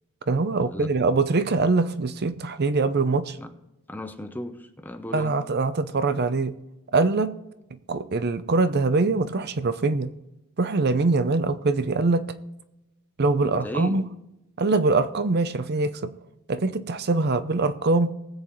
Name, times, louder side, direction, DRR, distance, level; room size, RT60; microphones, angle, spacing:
voice 1, 0.3-3.4 5.1-6.6 6.9-7.4 7.9-10.1 10.6-12.3 13.2-14.0 14.6-16.1 16.5-18.1, right 3 dB, 50° right, 0.6 m, -23 dB
voice 2, 3.9-5.3 13.4-14.0, left 1 dB, 10° left, 0.8 m, -35 dB
20.0 x 8.0 x 3.1 m
head